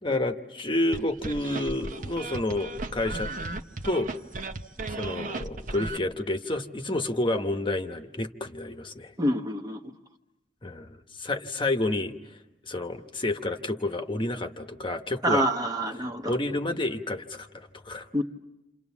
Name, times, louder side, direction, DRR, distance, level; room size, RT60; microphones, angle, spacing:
voice 1, 0.0-3.3 3.8-4.1 4.9-9.1 10.6-12.2 12.6-15.5 16.3-18.1, left 2 dB, 30° left, 6 dB, 1.1 m, -29 dB
sound 1, 0.9-6.0, right 2 dB, 45° right, 1.0 m, -35 dB
voice 2, 9.2-9.9 15.2-16.4 18.1-18.2, equal, 20° right, 5 dB, 1.1 m, -27 dB
28.5 x 28.5 x 7.2 m, 0.97 s
head